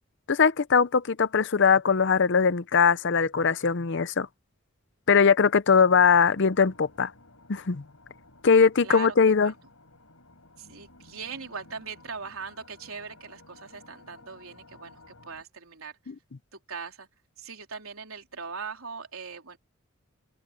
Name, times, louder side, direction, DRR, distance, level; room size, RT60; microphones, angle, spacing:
voice 1, 0.3-4.3 5.1-7.1 7.5-7.8 8.4-9.5, left 5 dB, 55° left, 0.6 m, -21 dB
sound 1, 6.1-15.4, left 2 dB, 80° left, 5.7 m, -54 dB
voice 2, 8.8-9.5 10.6-15.9 16.5-17.1 17.4-19.6, right 5 dB, 80° right, 3.8 m, -40 dB
head